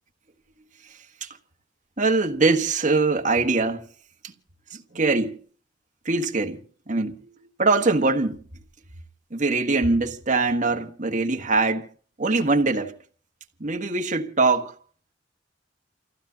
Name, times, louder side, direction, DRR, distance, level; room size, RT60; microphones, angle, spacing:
voice 1, 2.0-3.9 4.7-5.4 6.0-8.4 9.3-11.9 12.2-13.0 13.6-14.7, right 3 dB, 45° right, 1.5 m, -23 dB
29.0 x 15.5 x 2.8 m
head